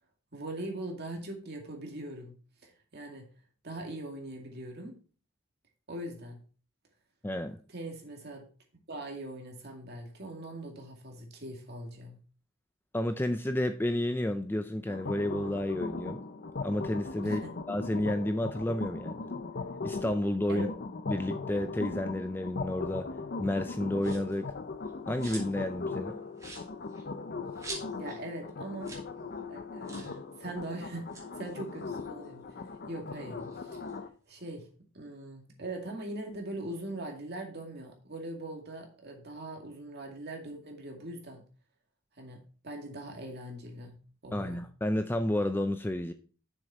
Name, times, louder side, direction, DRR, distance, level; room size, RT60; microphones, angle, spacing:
voice 1, 0.3-2.3 2.6-3.3 3.6-5.0 5.9-6.4 7.7-8.5 8.9-12.2 17.2-17.5 20.5-20.7 28.0-29.0 29.5-32.4 32.9-33.8 34.3-41.4 42.2-44.0 44.2-44.6, right 1 dB, 50° right, 2.2 m, -41 dB
voice 2, 7.2-7.6 12.9-16.2 16.6-17.4 17.7-19.2 19.8-20.7 21.1-23.1 23.4-24.5 25.1-26.2 44.3-46.1, left 1 dB, 10° left, 0.4 m, -31 dB
sound 1, 14.9-34.1, left 3 dB, 45° left, 0.7 m, -39 dB
sound 2, 24.0-24.4 24.8-25.7 26.0-26.1 26.4-28.2 28.5-28.6 28.8-29.1 29.4-29.5 29.8-30.2 30.9-32.7 33.1-34.5, right 3 dB, 15° right, 2.6 m, -46 dB
7.3 x 6.6 x 4.2 m
head